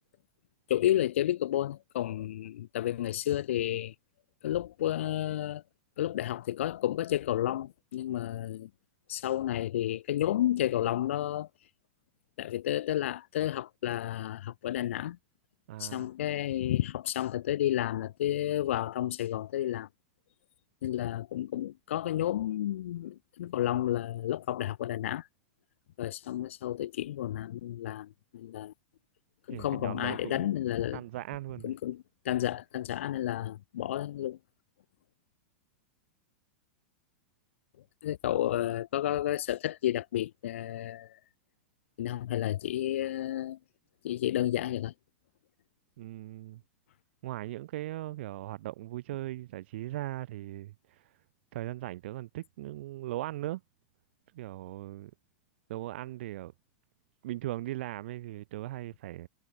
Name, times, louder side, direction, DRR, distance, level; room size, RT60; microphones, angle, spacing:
voice 1, 0.7-3.9 4.4-5.6 6.0-8.7 9.1-11.5 12.4-15.2 15.8-19.9 20.8-25.3 26.0-28.7 29.5-31.0 31.6-34.4 38.0-41.2 42.0-43.6 44.0-44.9, left 12 dB, 75° left, 7.7 m, -31 dB
voice 2, 15.7-16.0 29.5-30.5 30.9-31.7 46.0-46.6 47.2-51.2 51.5-53.6 54.3-55.1 55.7-56.5 57.2-59.3, right 15 dB, 65° right, 3.5 m, -39 dB
supercardioid pair, 155°, 7 cm